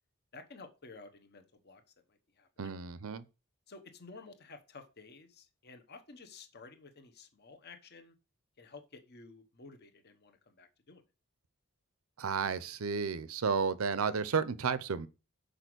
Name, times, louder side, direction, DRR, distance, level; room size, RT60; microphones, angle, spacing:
voice 1, 0.3-1.8 2.1-2.7 3.7-8.1 8.6-11.0, left 3 dB, 50° left, 1.2 m, -53 dB
voice 2, 2.6-3.2 12.2-15.1, right 5 dB, 75° right, 0.6 m, -32 dB
6.7 x 5.0 x 6.1 m
head